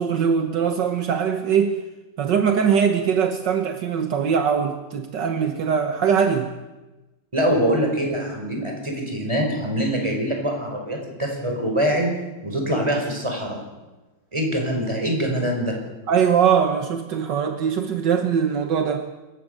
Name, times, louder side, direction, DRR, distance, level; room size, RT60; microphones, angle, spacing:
voice 1, 0.0-1.8 2.2-6.5 16.1-19.0, right 7 dB, 70° right, 6 dB, 1.8 m, -21 dB
voice 2, 7.3-12.1 12.4-13.6 14.3-15.7, equal, 15° right, 1 dB, 5.3 m, -24 dB
27.0 x 15.0 x 6.7 m, 1.1 s
omnidirectional pair, 2.0 m